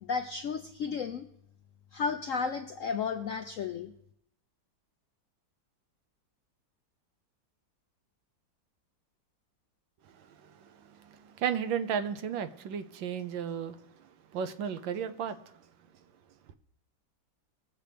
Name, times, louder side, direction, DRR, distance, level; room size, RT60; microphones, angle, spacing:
voice 1, 0.0-1.3 1.9-3.9, left 5 dB, 75° left, 0.7 m, -33 dB
voice 2, 10.1-15.6, right 8 dB, 85° right, 1.5 m, -35 dB
20.5 x 7.5 x 3.4 m
omnidirectional pair, 2.0 m